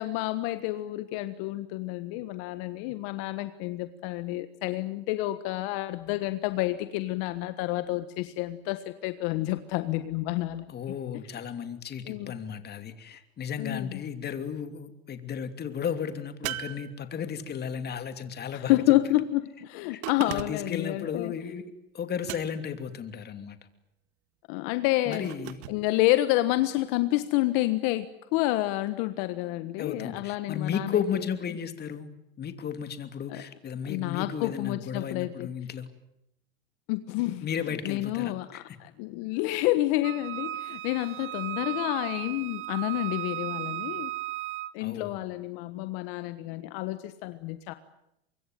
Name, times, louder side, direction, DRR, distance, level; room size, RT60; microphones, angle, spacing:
voice 1, 0.0-10.7 12.1-12.3 13.6-14.0 18.5-21.3 24.5-25.3 25.7-28.1 28.3-31.0 33.3-33.4 33.9-35.5 36.9-37.5 37.8-44.1 44.7-47.7, left 17 dB, 60° left, 11 dB, 1.5 m, -29 dB
voice 2, 10.7-18.8 19.9-21.6 21.9-23.6 25.0-25.6 29.8-32.1 32.4-35.9 37.4-38.8 44.8-45.2, left 7 dB, 30° left, 9 dB, 2.9 m, -34 dB
sound 1, 16.4-17.5 20.0-20.8 22.2-22.8 25.1-25.8, right 15 dB, 55° right, 1.7 m, -38 dB
Wind instrument woodwind instrument, 40.0-44.7, right 15 dB, 40° right, 1.1 m, -35 dB
25.0 x 23.0 x 9.3 m, 0.82 s
supercardioid pair, 110°, 31 cm